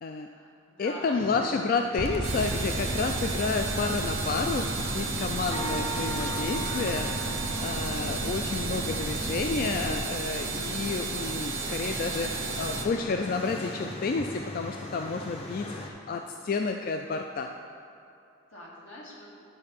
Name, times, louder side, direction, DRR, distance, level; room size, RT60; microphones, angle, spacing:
voice 1, 0.1-1.6 2.8-3.2 18.5-19.3, left 1 dB, 80° left, -4 dB, 2.0 m, -44 dB
voice 2, 0.8-17.5, left 4 dB, 45° left, 4 dB, 0.3 m, -30 dB
Amsterdam Morning Ambience, 1.9-15.9, equal, 30° left, 0.7 m, -39 dB
sound 1, 2.0-10.0, right 1 dB, 30° right, 0.5 m, -35 dB
sound 2, 2.2-12.8, right 4 dB, 85° right, 1.1 m, -33 dB
11.0 x 4.3 x 5.7 m, 2.7 s
head